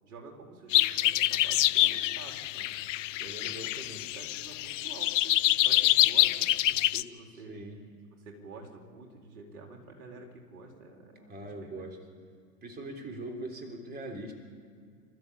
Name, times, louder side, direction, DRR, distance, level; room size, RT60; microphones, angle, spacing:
voice 1, 0.0-2.7 3.4-3.7 4.0-7.5 8.2-11.7, right 3 dB, 65° right, 1 dB, 4.7 m, -49 dB
sound 1, 0.7-7.0, left 16 dB, 50° left, 0.7 m, -26 dB
voice 2, 3.2-4.0 7.5-7.8 11.3-12.0 12.6-14.3, right 2 dB, 20° right, 3 dB, 3.8 m, -41 dB
27.5 x 14.0 x 8.7 m, 2.2 s
hypercardioid pair, 105°, 48 cm